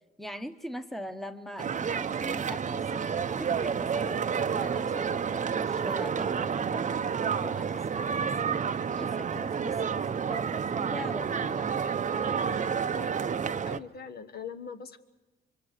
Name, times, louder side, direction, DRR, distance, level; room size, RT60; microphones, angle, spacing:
voice 1, 0.2-6.9 7.2-11.7, equal, ahead, 9 dB, 1.2 m, -42 dB
sound 1, 1.6-13.8, right 6 dB, 40° right, 0.7 m, -30 dB
voice 2, 12.1-13.2 13.5-15.0, left 6 dB, 55° left, 9 dB, 1.2 m, -43 dB
25.0 x 23.5 x 6.7 m, 1.2 s
cardioid pair, 90°, 20 cm